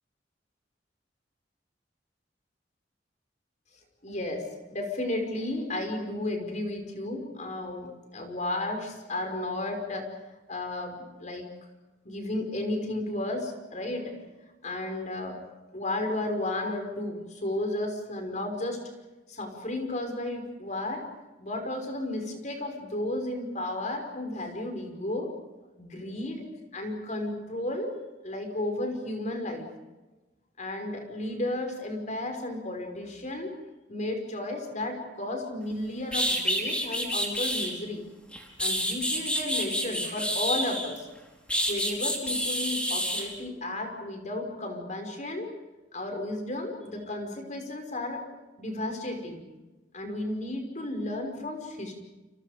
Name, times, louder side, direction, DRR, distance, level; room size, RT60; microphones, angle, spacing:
voice 1, 4.0-10.1 10.5-11.5 12.0-14.1 14.6-15.4 15.7-18.8 19.3-21.1 21.4-25.3 25.8-26.4 26.7-27.9 28.2-29.7 30.6-33.5 33.9-38.0 38.6-41.1 41.7-45.5 45.9-48.2 48.6-49.4 49.9-52.0, left 1 dB, 45° left, 4 dB, 5.7 m, -33 dB
sound 1, 35.7-35.8 36.1-37.7 38.3-41.0 41.5-43.3, equal, 5° left, 4.8 m, -28 dB
29.5 x 29.0 x 5.3 m, 1.1 s
head